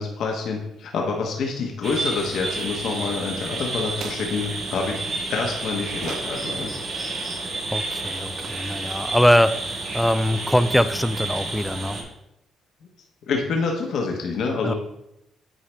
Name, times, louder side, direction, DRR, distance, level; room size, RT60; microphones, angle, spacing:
voice 1, 0.0-5.0 5.3-6.7 13.3-14.7, left 4 dB, 70° left, 1 dB, 1.0 m, -27 dB
sound 1, 1.8-12.0, right 2 dB, 55° right, 2.4 m, -30 dB
sound 2, 4.0-4.4 5.9-6.4 8.4-8.8, right 6 dB, 70° right, 0.7 m, -38 dB
voice 2, 7.7-12.0 14.6-14.7, equal, 5° left, 13 dB, 0.3 m, -22 dB
9.1 x 4.8 x 3.3 m, 0.84 s
cardioid pair, 90°, 0 cm